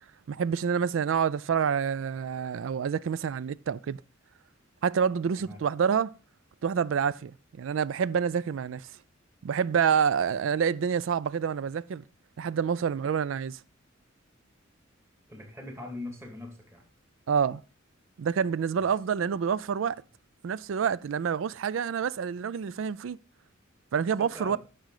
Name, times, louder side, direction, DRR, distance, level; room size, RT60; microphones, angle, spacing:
voice 1, 0.3-4.0 4.8-6.1 6.6-8.9 9.4-12.0 12.4-13.6 17.3-17.6 18.2-20.0 20.4-23.2 23.9-24.6, right 7 dB, 70° right, 0.4 m, -27 dB
voice 2, 15.3-16.8 18.8-18.9 24.2-24.6, left 2 dB, 15° right, 2.4 m, -41 dB
10.5 x 6.3 x 4.8 m
head